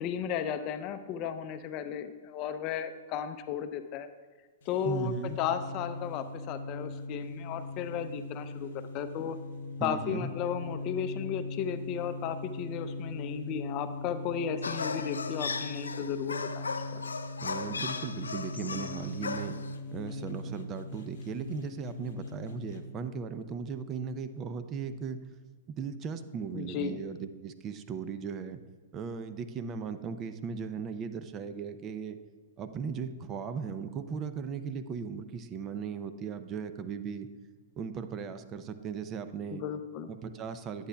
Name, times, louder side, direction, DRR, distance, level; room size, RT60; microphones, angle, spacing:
voice 1, 0.0-4.1 4.7-8.7 8.9-9.4 9.8-17.0 26.5-27.0 39.5-40.1, left 8 dB, 40° left, 10 dB, 0.5 m, -34 dB
sound 1, 4.6-22.9, left 2 dB, 65° left, 0.8 m, -40 dB
voice 2, 4.8-5.4 9.8-10.3 17.4-19.6 19.9-25.2 25.7-28.6 28.9-32.2 32.6-37.3 37.8-39.6 40.1-40.9, right 6 dB, 30° right, 10 dB, 0.5 m, -37 dB
sound 2, 14.6-19.7, left 4 dB, 90° left, 0.4 m, -37 dB
11.5 x 8.8 x 2.3 m, 1.5 s
hypercardioid pair, 120°, 0 cm